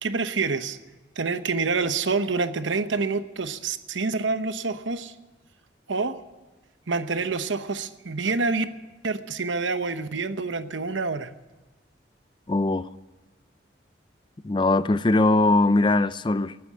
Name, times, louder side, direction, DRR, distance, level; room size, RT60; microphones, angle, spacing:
voice 1, 0.0-0.8 1.2-5.1 5.9-6.2 6.9-8.7 9.0-11.3, right 4 dB, 85° right, 11 dB, 0.9 m, -27 dB
voice 2, 12.5-12.9 14.4-16.6, left 2 dB, 25° left, 15 dB, 0.4 m, -21 dB
13.5 x 9.4 x 9.9 m, 1.2 s
head